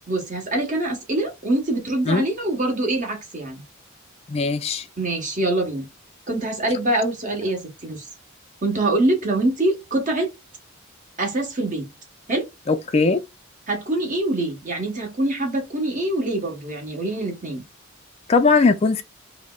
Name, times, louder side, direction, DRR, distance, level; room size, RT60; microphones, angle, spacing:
voice 1, 0.1-3.6 5.0-5.9 6.3-8.1 8.6-10.3 11.2-11.9 12.3-12.5 13.7-17.6, right 2 dB, 35° right, 1.2 m, -24 dB
voice 2, 4.3-4.9 12.7-13.2 18.3-19.0, left 4 dB, 30° left, 0.3 m, -19 dB
5.0 x 2.0 x 2.3 m
head